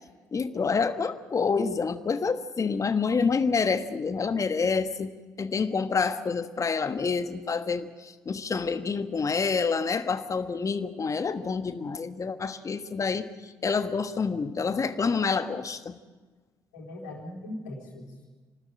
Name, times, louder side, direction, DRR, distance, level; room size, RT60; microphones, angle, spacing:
voice 1, 0.3-5.1 5.4-16.0, left 5 dB, 35° left, 11 dB, 1.4 m, -28 dB
voice 2, 16.7-18.3, left 1 dB, 80° left, 0 dB, 3.7 m, -40 dB
28.0 x 13.0 x 8.9 m, 1.4 s
figure-of-eight pair, 45°, 9 cm